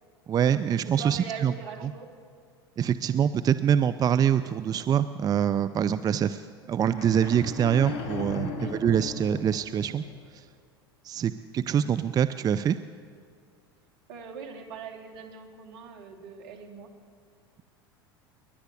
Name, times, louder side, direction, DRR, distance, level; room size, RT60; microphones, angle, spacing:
voice 1, 0.3-1.5 1.8-1.9 2.8-10.1 10.3-10.5 11.0-12.8, right 9 dB, 30° right, 12 dB, 0.6 m, -25 dB
voice 2, 0.8-2.1 8.6-8.7 14.1-16.9, right 6 dB, 65° right, 2 dB, 3.1 m, -41 dB
sound 1, 6.9-10.2, left 3 dB, 55° left, 4.5 m, -36 dB
28.0 x 11.5 x 8.5 m, 2.2 s
hypercardioid pair, 80°, 13 cm